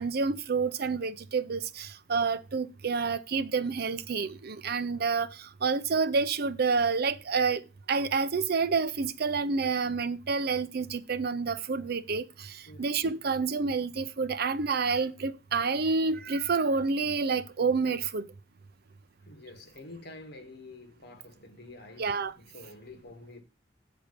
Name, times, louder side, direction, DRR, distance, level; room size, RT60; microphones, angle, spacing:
voice 1, 0.0-7.6 7.9-18.3 22.0-22.3, right 4 dB, 60° right, 0.6 m, -29 dB
voice 2, 19.2-23.4, left 2 dB, 60° left, 1.7 m, -48 dB
7.7 x 4.3 x 6.7 m
head